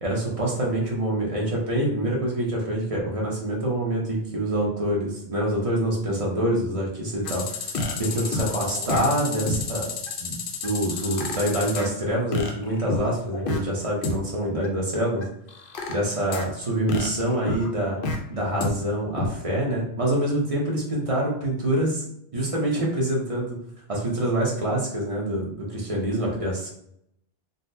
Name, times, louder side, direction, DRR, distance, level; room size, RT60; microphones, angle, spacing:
voice 1, 0.0-7.6 8.0-9.9 10.2-15.3 15.9-18.0 18.3-22.0 22.3-23.6 23.9-26.7, right 1 dB, 35° right, -3 dB, 0.8 m, -26 dB
sound 1, 7.2-11.9 12.3-13.6 14.0-14.1 14.6-14.7 15.2-16.4 16.9-18.2 18.6-18.7 19.2-19.3, left 3 dB, 60° left, 0.7 m, -29 dB
3.8 x 2.1 x 2.6 m, 0.73 s
omnidirectional pair, 1.2 m